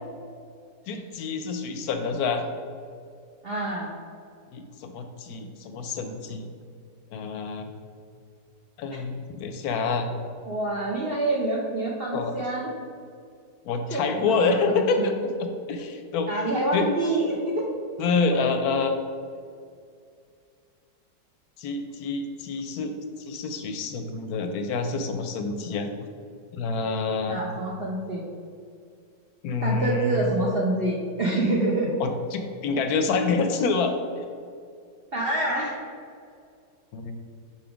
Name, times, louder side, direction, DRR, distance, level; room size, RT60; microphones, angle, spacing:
voice 1, 0.9-2.4 4.5-6.5 7.1-7.7 8.8-10.1 12.1-12.5 13.7-15.1 15.4-16.3 16.7-16.9 18.0-18.9 21.6-23.0 23.3-25.9 26.5-27.4 29.4-30.3 32.0-33.9 36.9-37.1, left 4 dB, 70° left, 7 dB, 0.9 m, -27 dB
voice 2, 3.4-3.9 10.5-12.7 13.9-14.0 14.4-15.1 16.3-17.7 18.3-18.4 27.3-28.2 29.6-31.9 35.1-35.7, right 2 dB, 65° right, -3 dB, 0.6 m, -26 dB
5.7 x 3.9 x 4.9 m, 2.3 s
omnidirectional pair, 1.9 m